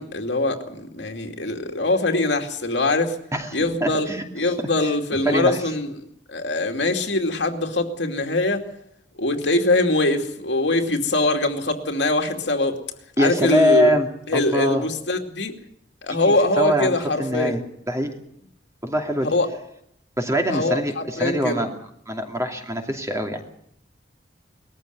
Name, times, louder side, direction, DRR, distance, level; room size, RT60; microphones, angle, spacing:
voice 1, 0.0-3.2 3.5-4.1 4.3-5.9 6.3-8.7 9.2-12.8 13.2-13.9 14.3-15.6 16.0-17.5 19.2-19.5 20.5-21.6, left 2 dB, 80° left, 4 dB, 2.6 m, -23 dB
voice 2, 3.3-4.2 4.8-4.9 5.2-5.6 13.2-14.8 16.2-17.6 17.9-18.1 18.8-19.3 20.2-21.7 22.1-23.6, equal, 15° right, 3 dB, 2.7 m, -23 dB
20.5 x 14.0 x 9.3 m, 0.74 s
head